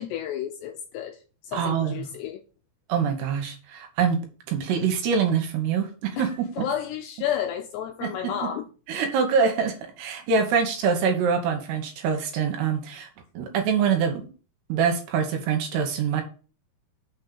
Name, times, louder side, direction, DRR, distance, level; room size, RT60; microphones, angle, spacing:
voice 1, 0.0-2.4 6.2-6.3 6.6-8.7, left 10 dB, 80° left, 2.5 m, -31 dB
voice 2, 1.5-2.1 2.9-4.2 4.5-6.3 6.6-6.7 8.0-8.1 8.9-13.1 13.3-14.2 14.7-16.2, right 6 dB, 70° right, 3.0 m, -24 dB
6.5 x 5.3 x 6.9 m
omnidirectional pair, 5.6 m